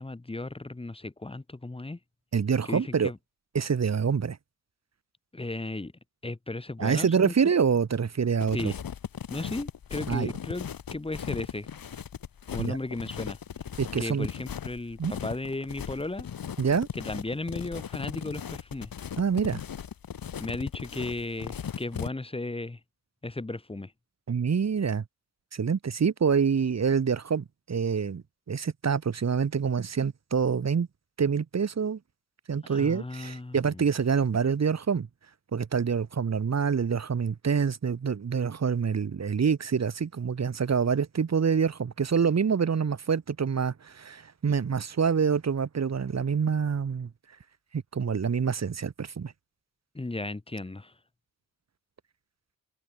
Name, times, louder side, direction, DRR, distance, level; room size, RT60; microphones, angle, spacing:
voice 1, 0.0-2.0 2.7-3.2 5.3-5.9 6.2-7.6 8.5-8.8 9.3-11.7 12.5-13.4 14.0-16.3 16.9-18.9 20.4-22.8 23.2-23.9 32.6-33.8 49.9-50.9, left 2 dB, 15° left, 5.3 m, -35 dB
voice 2, 2.3-3.1 3.5-4.4 6.8-8.7 10.1-10.3 12.6-12.8 13.8-14.3 15.0-15.1 16.6-16.9 19.2-19.6 24.3-25.0 25.5-30.9 31.2-32.0 32.5-35.1 35.5-47.1 47.7-49.3, right 6 dB, 45° right, 5.4 m, -26 dB
sound 1, 8.4-22.1, left 8 dB, 70° left, 7.4 m, -38 dB
wide cardioid pair, 175°, 36 cm